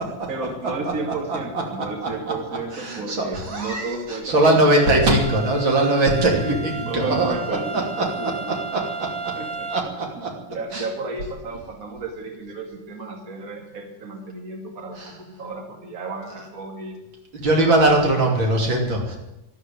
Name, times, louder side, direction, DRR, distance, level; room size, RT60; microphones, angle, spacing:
voice 1, 0.3-4.9 6.3-8.5 9.4-9.7 10.5-17.0, right 3 dB, 45° right, 3 dB, 2.5 m, -33 dB
voice 2, 2.0-2.3 2.7-8.1 8.5-9.4 9.7-10.3 10.7-10.8 15.0-15.1 16.3-16.5 17.3-19.2, right 2 dB, 85° right, 1 dB, 3.6 m, -21 dB
sound 1, 4.8-9.8, right 4 dB, 25° right, 0.5 m, -33 dB
13.0 x 11.5 x 9.2 m, 0.90 s
omnidirectional pair, 2.1 m